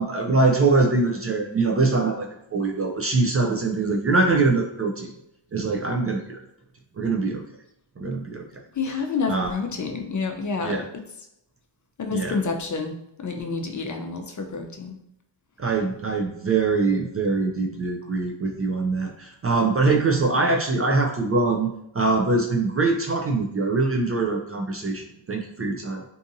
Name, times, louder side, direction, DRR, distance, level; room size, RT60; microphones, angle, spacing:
voice 1, 0.0-5.1 5.5-6.4 7.0-7.4 8.0-8.4 9.3-9.5 10.6-10.8 12.1-12.3 15.6-21.7 21.9-26.0, right 3 dB, 30° right, 1 dB, 0.4 m, -23 dB
voice 2, 8.7-10.9 12.0-12.9 13.2-15.0, left 4 dB, 40° left, 4 dB, 0.5 m, -28 dB
2.6 x 2.5 x 2.6 m, 0.81 s
cardioid pair, 50°, 50 cm